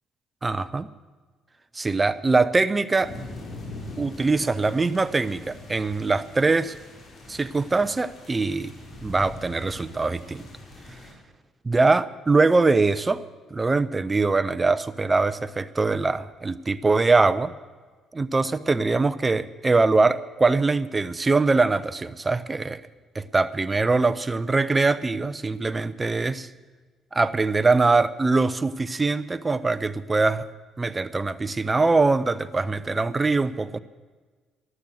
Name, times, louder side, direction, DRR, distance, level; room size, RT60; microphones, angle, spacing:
voice 1, 0.4-0.9 1.7-3.1 4.0-6.8 7.3-8.7 9.0-10.5 11.6-13.2 13.5-17.5 18.1-22.8 23.1-26.5 27.1-30.5 30.8-33.8, right 3 dB, 25° right, 16 dB, 0.8 m, -22 dB
sound 1, 3.0-11.1, left 1 dB, 45° left, 5.0 m, -42 dB
14.0 x 12.0 x 7.8 m, 1.4 s
supercardioid pair, 65°, 0 cm